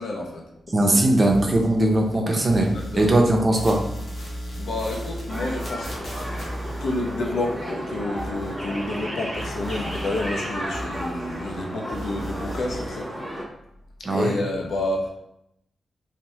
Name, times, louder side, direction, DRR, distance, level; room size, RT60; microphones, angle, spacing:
voice 1, 0.0-1.1 2.6-3.2 4.2-5.9 6.8-13.1 14.0-15.1, left 2 dB, 80° left, 0 dB, 0.5 m, -30 dB
voice 2, 0.7-3.8 14.0-14.4, right 1 dB, 25° right, 1 dB, 0.4 m, -20 dB
sound 1, 1.3-2.2 2.4-9.1 9.3-11.6 11.9-12.9, equal, 55° left, 0.8 m, -36 dB
sound 2, 5.3-13.4, equal, 25° left, 1.0 m, -33 dB
2.9 x 2.1 x 2.7 m, 0.81 s
wide cardioid pair, 125°, 0 cm